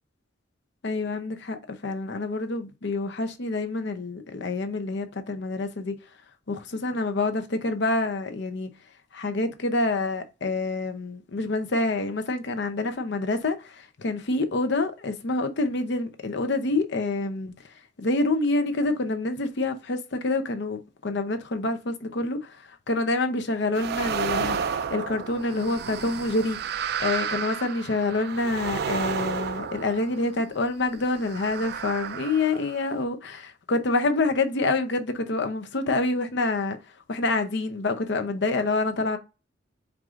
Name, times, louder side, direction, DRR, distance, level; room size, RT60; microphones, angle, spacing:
voice 1, 0.8-6.0 6.5-8.7 9.1-17.5 18.0-26.6 27.0-36.8 37.1-39.2, left 2 dB, 60° left, 0.7 m, -27 dB
sound 1, 23.7-30.5 31.2-33.0, right 7 dB, 55° right, 0.4 m, -32 dB
4.7 x 2.4 x 3.6 m
head